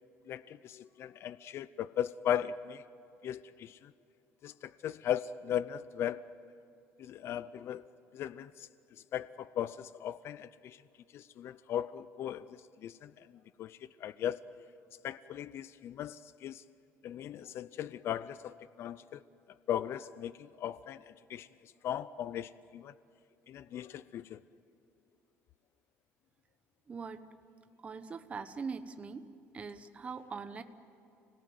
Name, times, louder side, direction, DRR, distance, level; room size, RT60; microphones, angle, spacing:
voice 1, 0.3-2.8 3.2-3.9 4.4-6.2 7.0-7.8 8.1-8.7 9.1-10.8 11.1-12.5 12.8-13.1 13.6-14.4 15.0-16.6 17.0-19.2 19.7-22.9 23.5-24.4, left 10 dB, 55° left, 16 dB, 0.5 m, -37 dB
voice 2, 26.9-27.2 27.8-29.3 29.5-30.6, right 5 dB, 25° right, 10 dB, 1.0 m, -41 dB
30.0 x 18.0 x 9.5 m, 2.6 s
cardioid pair, 145°, 5 cm